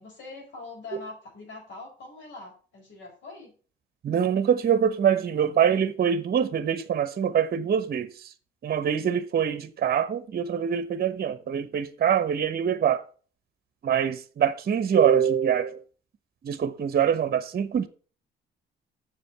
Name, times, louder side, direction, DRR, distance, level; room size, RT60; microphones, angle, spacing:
voice 1, 0.0-3.5, left 3 dB, 65° left, 5.0 m, -43 dB
voice 2, 4.0-8.3 8.6-13.0 13.8-15.8 16.4-17.9, right 8 dB, 50° right, 1.0 m, -24 dB
7.4 x 5.1 x 7.4 m
cardioid pair, 90°, 20 cm